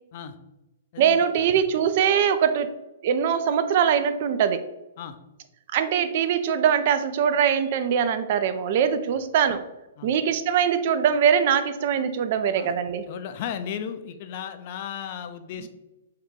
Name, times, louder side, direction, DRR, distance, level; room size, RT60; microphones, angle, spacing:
voice 1, 1.0-2.7 3.0-4.6 5.7-9.6 10.0-13.0, right 8 dB, 50° right, 10 dB, 0.3 m, -22 dB
voice 2, 13.1-15.7, left 8 dB, 50° left, 8 dB, 0.4 m, -35 dB
2.7 x 2.3 x 3.7 m, 0.96 s
hypercardioid pair, 135°, 0 cm